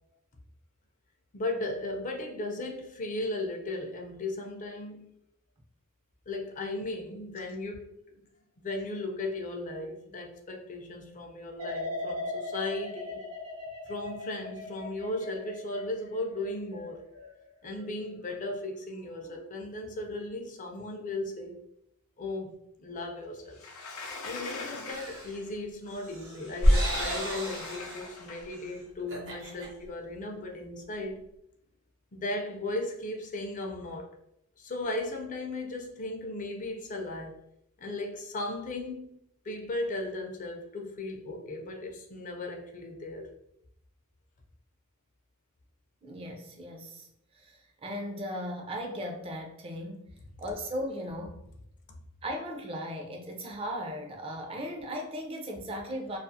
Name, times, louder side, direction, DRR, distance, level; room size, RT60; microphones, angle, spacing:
voice 1, 1.3-5.1 6.3-7.9 8.6-13.2 13.9-17.0 17.6-21.6 22.2-23.6 24.2-31.2 32.1-34.1 34.6-37.4 37.8-43.3 51.9-52.0, left 2 dB, 35° left, 0.4 m, -36 dB
sound 1, 11.6-18.5 18.9-19.4, left 2 dB, 90° right, 1.0 m, -40 dB
Sliding door, 23.5-25.5 26.4-28.6, left 3 dB, 90° left, 0.5 m, -42 dB
sound 2, 24.9-25.4 25.9-28.1 28.5-28.7 29.0-29.7, equal, 60° right, 0.8 m, -28 dB
voice 2, 46.0-47.1 47.3-50.1 50.4-51.4 52.2-56.2, equal, 25° right, 0.4 m, -37 dB
2.4 x 2.3 x 2.6 m
head